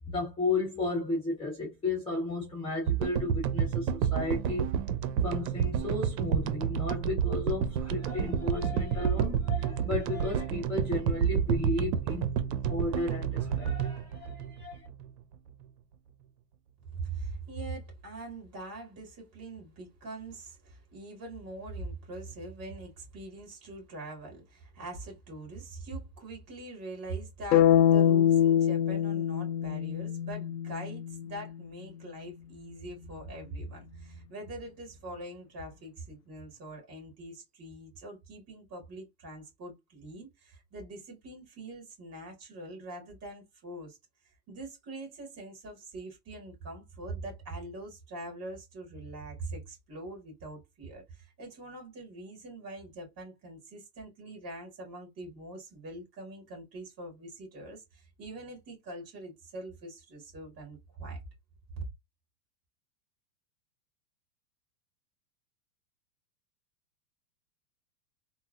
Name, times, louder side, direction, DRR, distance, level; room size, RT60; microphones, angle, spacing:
voice 1, 0.1-4.6 5.2-12.3 12.7-14.9, left 2 dB, 10° left, 0.9 m, -33 dB
sound 1, 2.9-15.2, right 8 dB, 75° right, 0.6 m, -30 dB
voice 2, 16.9-44.0 44.5-61.2, right 2 dB, 30° right, 2.0 m, -43 dB
sound 2, 27.5-31.6, left 10 dB, 70° left, 0.5 m, -24 dB
3.7 x 2.0 x 2.4 m
hypercardioid pair, 130°, 49 cm